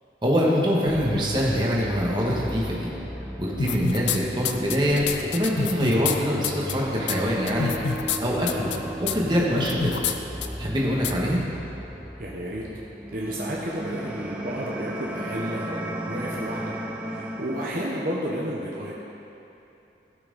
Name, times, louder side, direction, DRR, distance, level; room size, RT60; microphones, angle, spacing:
voice 1, 0.2-2.9 3.4-7.7 8.2-8.7 9.0-10.0 10.6-11.4, equal, 25° right, -4 dB, 1.4 m, -24 dB
sound 1, 0.9-17.9, right 1 dB, 5° right, 0.6 m, -36 dB
sound 2, 3.6-4.2 4.4-6.2 6.4-6.7 7.1-7.2 7.5-8.2 8.5-8.8 9.1-9.2 9.6-10.1 10.4-10.5 11.0-11.1, left 6 dB, 85° left, 0.5 m, -27 dB
voice 2, 12.2-12.6 13.1-16.8 17.0-18.9, equal, 50° right, -4 dB, 1.0 m, -32 dB
16.0 x 5.9 x 4.0 m, 2.9 s
head